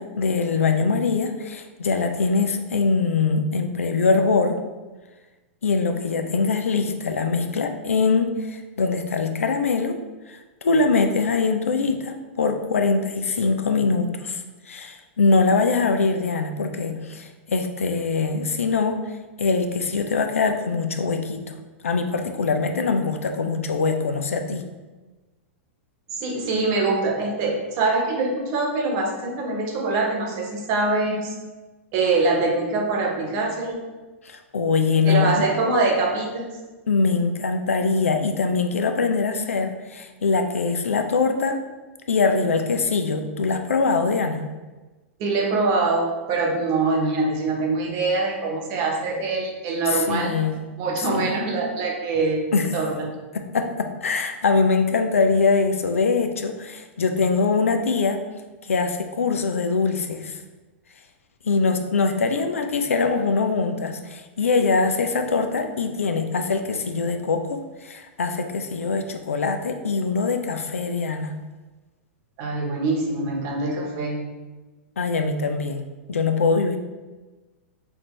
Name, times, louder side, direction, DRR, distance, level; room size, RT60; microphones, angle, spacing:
voice 1, 0.0-4.6 5.6-10.0 10.3-19.0 19.4-21.6 21.8-24.6 34.2-35.4 36.9-41.6 42.1-44.5 49.9-50.6 51.0-51.3 52.5-52.8 53.3-58.2 58.7-60.4 61.4-71.4 75.0-75.8 76.1-76.8, left 4 dB, 90° left, 6 dB, 0.5 m, -23 dB
voice 2, 26.1-31.3 31.9-33.9 35.0-36.5 45.2-50.4 50.8-52.4 52.7-53.1 72.4-74.1, right 3 dB, 45° right, 1 dB, 1.1 m, -24 dB
5.8 x 2.7 x 3.1 m, 1.2 s
hypercardioid pair, 115°, 7 cm